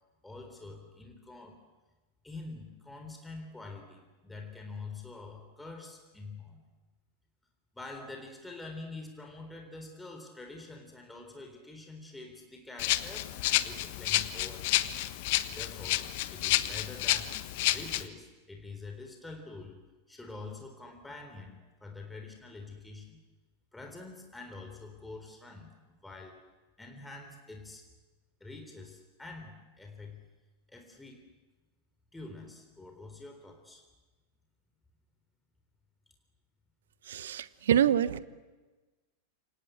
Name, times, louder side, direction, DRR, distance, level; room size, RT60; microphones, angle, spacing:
voice 1, 0.2-1.6 2.2-6.6 7.7-14.9 15.5-17.4 17.7-19.8 20.1-23.2 23.7-26.4 26.8-27.8 28.4-30.2 30.7-31.3 32.1-33.8, left 3 dB, 5° left, 4 dB, 3.8 m, -46 dB
Rattle (instrument), 12.8-18.0, left 16 dB, 50° left, 1.3 m, -30 dB
voice 2, 37.0-38.2, right 10 dB, 60° right, 16 dB, 1.2 m, -26 dB
28.5 x 26.0 x 7.9 m, 1.2 s
figure-of-eight pair, 90°, 0 cm